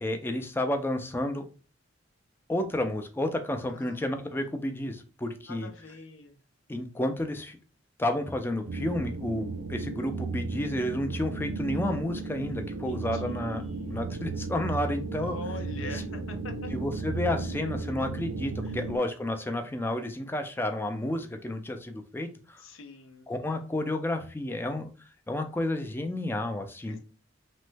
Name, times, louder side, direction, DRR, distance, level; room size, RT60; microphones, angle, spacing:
voice 1, 0.0-1.5 2.5-5.7 6.7-7.6 8.0-13.6 13.9-15.4 16.7-22.6 23.3-24.9 25.3-27.0, left 1 dB, 10° left, 5 dB, 0.3 m, -31 dB
voice 2, 3.7-4.5 5.5-6.4 12.6-14.0 15.2-16.7 18.6-18.9 22.6-23.3 26.9-27.0, left 2 dB, 75° left, 6 dB, 0.6 m, -44 dB
sound 1, 8.7-19.0, right 3 dB, 75° right, 0.4 m, -34 dB
3.1 x 2.1 x 3.2 m, 0.36 s
head